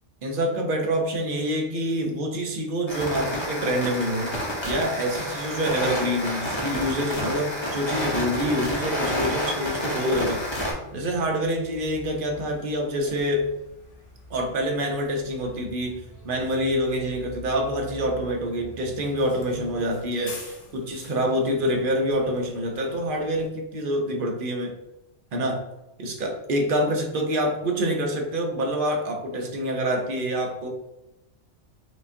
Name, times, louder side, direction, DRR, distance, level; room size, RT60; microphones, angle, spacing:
voice 1, 0.2-4.4 4.6-10.4 10.9-13.5 14.3-16.0 16.2-20.4 20.7-24.7 25.3-25.6 26.0-30.7, equal, 55° right, 2 dB, 0.7 m, -26 dB
sound 1, 2.9-10.7, equal, 25° left, 0.7 m, -29 dB
Bus, 10.2-23.5, left 1 dB, 50° left, 0.8 m, -45 dB
4.9 x 2.3 x 2.6 m, 0.92 s
omnidirectional pair, 1.3 m